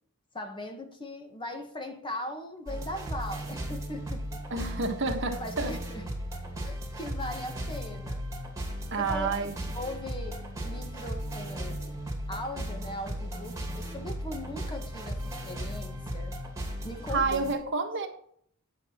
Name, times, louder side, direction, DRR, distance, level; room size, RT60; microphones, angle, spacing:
voice 1, 0.3-4.2 5.4-6.0 6.6-8.2 9.0-12.0 12.3-16.3 16.8-17.7, left 1 dB, 20° left, 5 dB, 1.4 m, -39 dB
sound 1, 2.7-17.5, equal, 15° right, 2.8 m, -36 dB
voice 2, 4.5-5.7 8.9-9.6 17.1-18.1, right 3 dB, 55° right, 5 dB, 1.5 m, -29 dB
9.8 x 7.9 x 4.5 m, 0.62 s
head